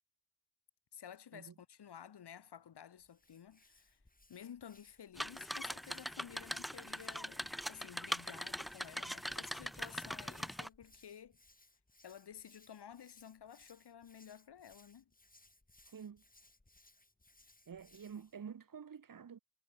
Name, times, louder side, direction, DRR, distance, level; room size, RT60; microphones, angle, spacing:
voice 1, 0.9-4.0 4.3-11.4 12.0-15.1, left 8 dB, 85° left, 3.7 m, -53 dB
Hands, 3.0-18.4, left 2 dB, 20° left, 6.6 m, -67 dB
sound 1, 5.2-10.7, equal, ahead, 0.5 m, -42 dB
voice 2, 15.9-16.2 17.7-19.4, right 7 dB, 55° right, 1.5 m, -49 dB
cardioid pair, 50°, 39 cm